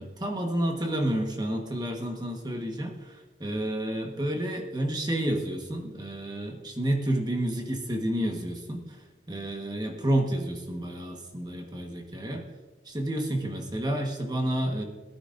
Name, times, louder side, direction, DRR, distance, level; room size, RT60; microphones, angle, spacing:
voice 1, 0.0-9.0 9.3-12.4 12.8-14.8, right 1 dB, 20° right, 2 dB, 1.3 m, -30 dB
19.0 x 9.6 x 2.6 m, 1.3 s
head